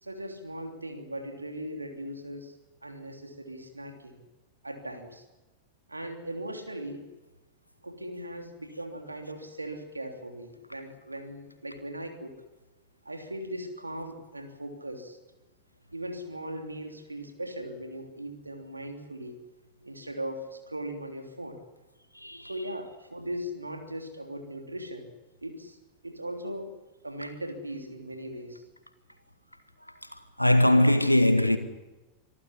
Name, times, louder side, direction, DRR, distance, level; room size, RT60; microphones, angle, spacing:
voice 1, 0.0-2.6 2.8-4.2 4.6-5.2 5.9-7.1 7.8-12.4 13.0-15.2 15.9-19.4 19.8-21.6 22.4-25.1 25.4-25.8 26.0-26.7 27.0-28.6, right 1 dB, 80° right, 3.2 m, -39 dB
voice 2, 22.2-22.5 30.4-31.6, left 1 dB, 90° left, 1.9 m, -21 dB
25.5 x 13.5 x 9.9 m
figure-of-eight pair, 90°, 0 cm